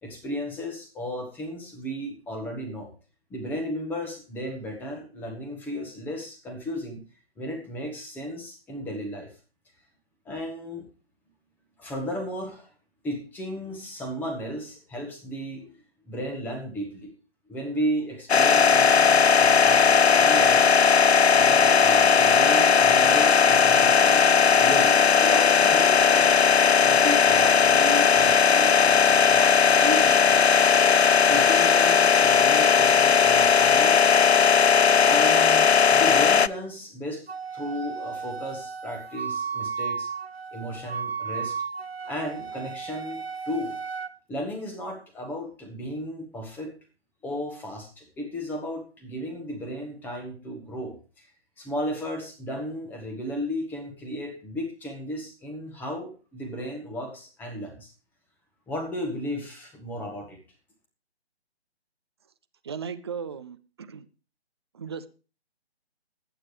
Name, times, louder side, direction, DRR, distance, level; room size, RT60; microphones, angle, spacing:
voice 1, 0.0-2.9 3.3-7.0 7.4-9.3 10.2-10.9 11.8-12.7 13.0-15.7 16.1-17.1 17.5-20.7 21.3-24.3 24.6-26.4 26.8-30.6 31.3-34.0 35.0-40.1 40.5-41.6 42.1-43.8 44.3-46.8 47.2-51.3 51.6-57.9 58.7-60.4, equal, 5° left, 1.6 m, -34 dB
sound 1, 18.3-36.5, left 6 dB, 75° left, 0.6 m, -18 dB
Wind instrument woodwind instrument, 37.3-44.1, right 5 dB, 65° right, 1.3 m, -34 dB
voice 2, 62.6-64.0 64.7-65.1, right 6 dB, 25° right, 0.6 m, -36 dB
20.5 x 9.1 x 3.3 m
figure-of-eight pair, 145°, 33 cm